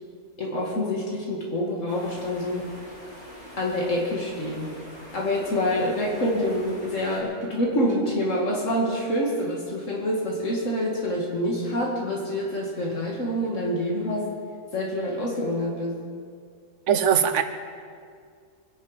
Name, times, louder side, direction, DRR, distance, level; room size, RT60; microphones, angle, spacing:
voice 1, 0.4-2.7 3.6-4.7 5.1-14.3 14.7-15.9, left 1 dB, 70° left, -2 dB, 2.5 m, -26 dB
sound 1, 1.9-7.2, equal, 55° left, 6.3 m, -44 dB
voice 2, 16.9-17.4, right 8 dB, 70° right, 9 dB, 1.2 m, -20 dB
24.5 x 11.0 x 5.2 m, 2.2 s
omnidirectional pair, 1.3 m